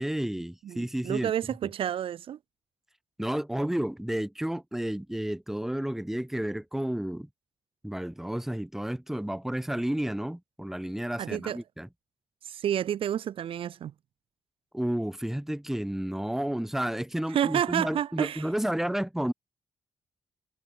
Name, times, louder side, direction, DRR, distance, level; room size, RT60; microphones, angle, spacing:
voice 1, 0.0-1.3 3.2-7.3 7.8-11.9 14.7-19.3, right 1 dB, 5° right, 4.3 m, -31 dB
voice 2, 0.6-2.4 11.2-11.6 12.4-13.9 17.3-18.5, right 10 dB, 80° right, 1.7 m, -30 dB
wide cardioid pair, 170°, 9 cm